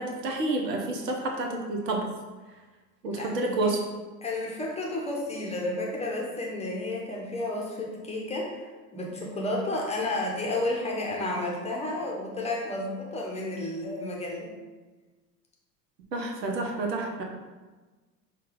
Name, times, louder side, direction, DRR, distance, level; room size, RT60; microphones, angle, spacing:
voice 1, 0.0-2.1 3.0-3.8 16.1-17.2, right 2 dB, 75° right, 1 dB, 0.9 m, -29 dB
voice 2, 3.1-3.7 4.2-8.7 8.9-14.5, left 2 dB, 15° left, -2 dB, 0.8 m, -31 dB
5.3 x 2.5 x 3.8 m, 1.3 s
figure-of-eight pair, 75°, 50 cm